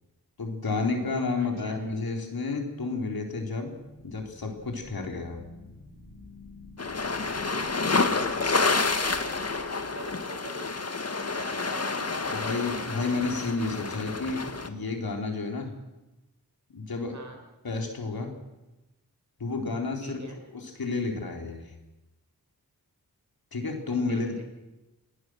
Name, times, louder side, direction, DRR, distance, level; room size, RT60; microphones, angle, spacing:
voice 1, 0.4-3.8 4.0-5.4 12.3-15.8 16.7-17.2 17.6-18.3 19.4-20.2 20.5-21.7 23.5-24.4, left 3 dB, 65° left, 2 dB, 4.0 m, -31 dB
voice 2, 1.4-1.8 7.2-10.8 11.3-12.6 17.1-17.4 20.0-20.4 24.1-24.4, right 2 dB, 45° right, 3 dB, 5.6 m, -44 dB
sound 1, 3.8-10.5, left 2 dB, 90° left, 7.4 m, -50 dB
sound 2, 6.8-14.7, left 3 dB, 40° left, 1.8 m, -29 dB
27.5 x 19.0 x 6.4 m, 1.0 s
wide cardioid pair, 65°, 38 cm